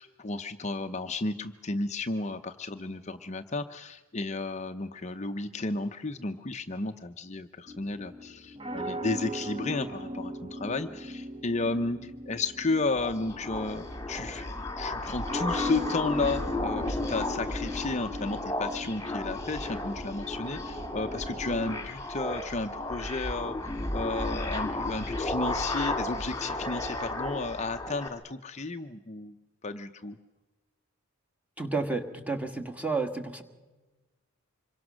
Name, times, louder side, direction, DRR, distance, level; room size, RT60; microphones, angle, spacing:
voice 1, 0.0-14.5 14.8-29.3 29.6-30.2, left 3 dB, 30° left, 7 dB, 0.7 m, -33 dB
sound 1, 7.7-21.8, left 1 dB, 25° right, 1.1 m, -39 dB
sound 2, 12.8-28.1, left 1 dB, 15° left, 2.0 m, -34 dB
voice 2, 31.6-33.4, right 3 dB, 5° right, 6 dB, 1.6 m, -31 dB
26.0 x 23.0 x 6.3 m, 1.2 s
head